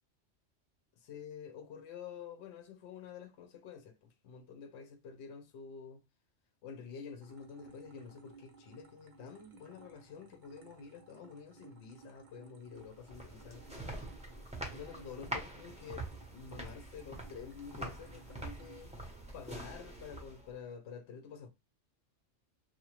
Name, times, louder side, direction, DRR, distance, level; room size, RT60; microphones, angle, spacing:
voice 1, 1.0-6.0 6.6-14.1 14.7-21.5, left 6 dB, 75° left, 0.8 m, -49 dB
sound 1, 7.2-18.9, right 4 dB, 50° right, 0.6 m, -59 dB
sound 2, 12.8-20.6, right 1 dB, 10° right, 0.5 m, -45 dB
2.8 x 2.1 x 2.9 m
omnidirectional pair, 1.2 m